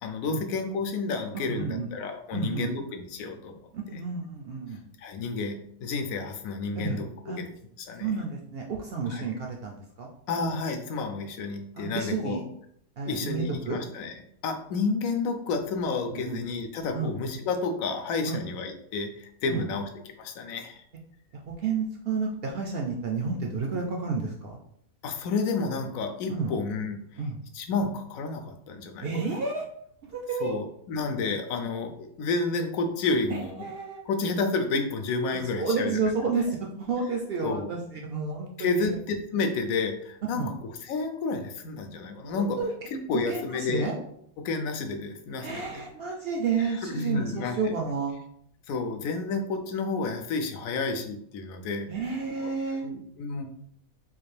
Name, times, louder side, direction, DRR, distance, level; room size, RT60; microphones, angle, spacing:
voice 1, 0.0-3.6 5.0-7.3 7.9-8.1 9.1-9.2 10.3-12.4 13.1-14.1 14.4-19.8 20.2-20.8 25.0-27.0 27.6-29.1 30.4-33.5 34.1-35.9 37.4-37.7 38.6-40.4 40.9-42.6 42.9-43.9 44.4-45.8 46.9-47.5 48.7-51.9 52.8-53.5, left 4 dB, 75° left, 6 dB, 1.0 m, -30 dB
voice 2, 1.5-1.9 2.3-2.7 3.7-4.8 6.7-7.4 8.0-10.1 11.7-12.4 13.0-13.8 16.1-16.4 16.9-17.1 18.3-18.4 19.4-19.8 21.3-24.6 26.3-26.5 27.2-27.4 29.0-29.7 30.0-30.6 33.3-34.0 35.3-39.0 40.3-40.5 42.2-42.7 43.3-43.9 45.4-48.2 51.9-52.9, right 4 dB, 65° right, 1 dB, 0.6 m, -31 dB
3.8 x 2.5 x 3.2 m, 0.69 s
omnidirectional pair, 1.5 m